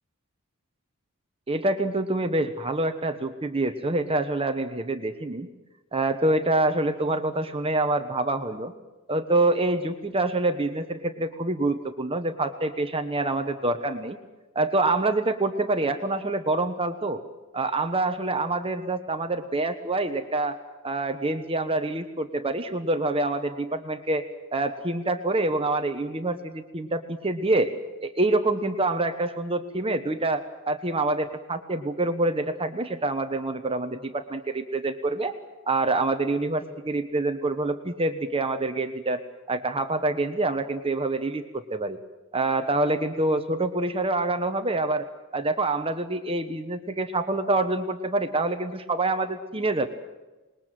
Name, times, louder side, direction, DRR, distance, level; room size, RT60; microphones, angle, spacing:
voice 1, 1.5-5.5 5.9-8.7 9.1-14.2 14.5-17.2 17.5-20.6 20.8-24.2 24.5-27.7 28.0-35.3 35.7-39.2 39.5-42.0 42.3-45.1 45.3-49.9, right 2 dB, 25° right, 7 dB, 1.2 m, -26 dB
26.5 x 21.0 x 7.7 m, 1.1 s
head